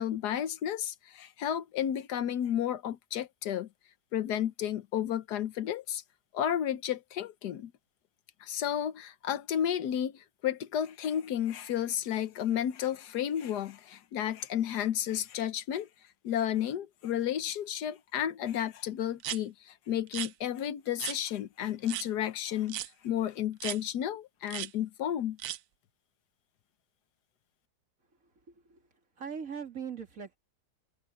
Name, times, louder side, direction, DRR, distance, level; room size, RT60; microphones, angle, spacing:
voice 1, 0.0-3.7 4.1-6.0 6.3-7.7 8.4-15.9 16.2-25.4, left 10 dB, 80° left, 1.4 m, -32 dB
sound 1, 19.2-19.4 20.1-20.3 21.0-21.2 21.9-22.1 22.7-22.9 23.6-23.8 24.5-24.7 25.4-25.6, right 13 dB, 75° right, 1.1 m, -36 dB
voice 2, 28.5-28.8 29.2-30.4, right 7 dB, 55° right, 2.9 m, -40 dB
omnidirectional pair, 1.7 m